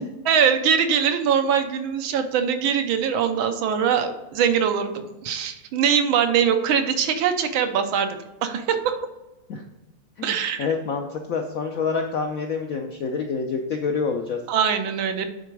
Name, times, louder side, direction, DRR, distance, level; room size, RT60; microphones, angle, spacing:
voice 1, 0.3-9.0 10.2-10.7 14.5-15.3, right 7 dB, 90° right, 7 dB, 1.5 m, -22 dB
voice 2, 10.2-14.4, left 5 dB, 80° left, 4 dB, 0.7 m, -27 dB
9.2 x 3.9 x 4.6 m, 1.1 s
omnidirectional pair, 2.2 m